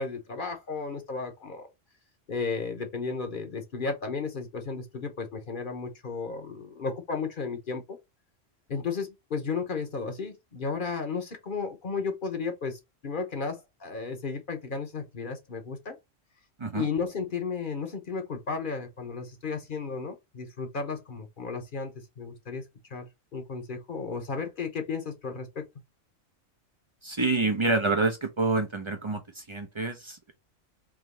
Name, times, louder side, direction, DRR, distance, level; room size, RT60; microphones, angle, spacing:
voice 1, 0.0-1.7 2.3-8.0 8.7-16.0 16.7-22.6 22.9-25.6, left 4 dB, 45° left, 1.0 m, -34 dB
voice 2, 27.0-30.3, right 3 dB, 35° right, 0.5 m, -27 dB
3.7 x 3.0 x 3.0 m
omnidirectional pair, 1.3 m